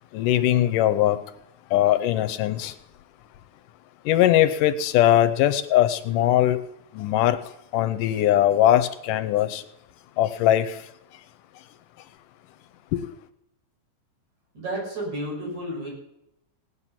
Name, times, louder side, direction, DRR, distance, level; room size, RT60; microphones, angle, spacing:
voice 1, 0.1-1.2 1.7-2.8 4.1-6.6 6.9-7.4 7.7-9.6 10.2-10.9 12.9-13.0, left 12 dB, 85° left, 11 dB, 2.3 m, -20 dB
voice 2, 14.5-15.9, right 1 dB, 60° right, -3 dB, 7.6 m, -31 dB
17.5 x 9.8 x 5.8 m, 0.80 s
omnidirectional pair, 3.7 m